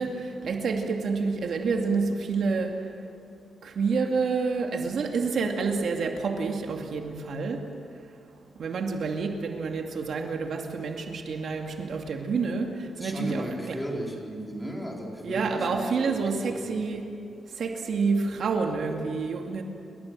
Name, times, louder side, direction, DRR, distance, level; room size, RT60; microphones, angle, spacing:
voice 1, 0.0-2.9 3.6-8.2 8.6-13.8 15.2-17.2 17.5-19.6, right 4 dB, 60° right, 3 dB, 2.4 m, -28 dB
voice 2, 13.0-16.8, equal, 5° left, -1 dB, 4.1 m, -35 dB
29.5 x 23.0 x 7.6 m, 2.6 s
wide cardioid pair, 160°, 0 cm